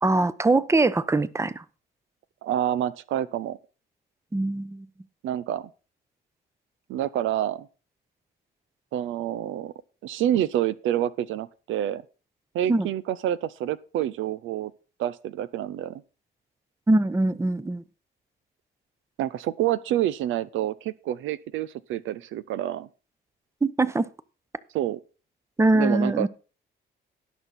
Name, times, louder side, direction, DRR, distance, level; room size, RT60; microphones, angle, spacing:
voice 1, 0.0-1.6 4.3-4.9 12.7-12.9 16.9-17.8 23.6-24.1 25.6-26.3, right 2 dB, 15° right, 0.8 m, -22 dB
voice 2, 2.4-3.6 5.2-5.7 6.9-7.7 8.9-9.7 10.0-12.0 12.5-14.7 15.0-16.0 19.2-22.9 24.7-25.0 25.7-26.3, right 11 dB, 85° right, 0.6 m, -28 dB
18.0 x 6.2 x 4.2 m
cardioid pair, 90°, 20 cm